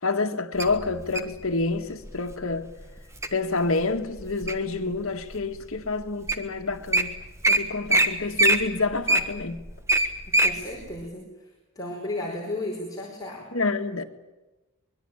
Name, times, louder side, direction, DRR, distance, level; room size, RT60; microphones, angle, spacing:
voice 1, 0.0-2.7 3.3-7.1 7.5-9.6 13.5-14.0, left 3 dB, 70° left, 1.8 m, -28 dB
Wild animals, 0.6-1.3 2.0-2.3 2.8-3.3 3.8-4.7 5.3-5.4 6.0-6.1 6.3-6.5 6.7-7.0 7.4-7.6 7.9-8.1 8.4-10.5 11.0-11.1, right 2 dB, 15° right, 1.5 m, -21 dB
voice 2, 10.3-11.5 11.7-13.5, left 1 dB, 15° left, 4.7 m, -34 dB
24.5 x 21.5 x 8.8 m
head